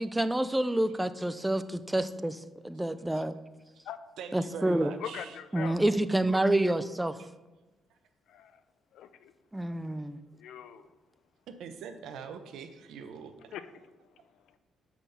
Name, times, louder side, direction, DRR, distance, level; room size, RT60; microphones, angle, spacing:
voice 1, 0.0-3.4 4.3-4.9 5.5-7.2 9.5-10.2, right 1 dB, 10° right, 13 dB, 0.5 m, -28 dB
voice 2, 4.2-5.4 11.5-13.5, right 6 dB, 80° right, 8 dB, 0.9 m, -43 dB
voice 3, 5.0-5.7 8.3-8.6 8.9-9.3 10.4-10.9 13.5-13.6, left 10 dB, 80° left, 12 dB, 0.6 m, -41 dB
6.1 x 5.9 x 6.9 m, 1.1 s
cardioid pair, 90°, 0 cm